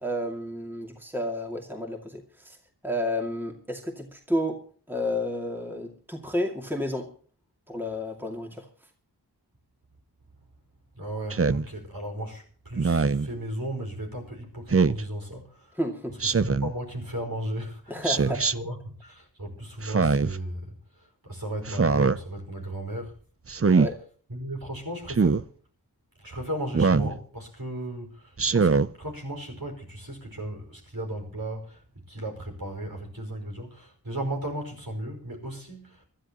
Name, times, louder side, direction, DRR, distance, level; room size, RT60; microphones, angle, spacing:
voice 1, 0.0-2.6 2.8-4.6 4.9-7.1 7.7-8.7 15.8-16.2 17.9-18.4 23.8-24.0, left 1 dB, 5° right, 2 dB, 2.3 m, -31 dB
voice 2, 10.9-15.8 16.1-23.1 24.3-25.5 26.2-36.0, right 1 dB, 55° right, 2 dB, 5.3 m, -36 dB
Speech synthesizer, 11.3-11.6 12.8-13.3 14.7-15.0 16.2-16.7 18.0-18.5 19.8-20.4 21.7-22.2 23.5-23.9 25.1-25.4 26.7-27.1 28.4-28.9, right 4 dB, 35° right, 0.6 m, -22 dB
25.0 x 13.0 x 3.0 m, 0.44 s
wide cardioid pair, 55°, 41 cm